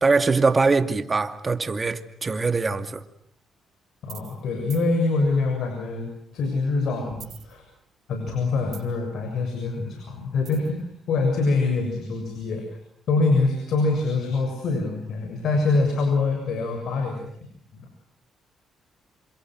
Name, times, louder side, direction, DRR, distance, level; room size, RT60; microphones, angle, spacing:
voice 1, 0.0-3.0, right 4 dB, 30° right, 2.3 m, -22 dB
voice 2, 4.0-7.6 8.1-12.6 13.1-17.2 17.7-17.9, left 3 dB, 70° left, 7.0 m, -24 dB
sound 1, 4.0-4.4 4.7-4.9 7.1-8.0 8.3-9.1 10.4-10.8, right 8 dB, 65° right, 3.6 m, -44 dB
28.5 x 27.0 x 6.3 m
cardioid pair, 90°, 0 cm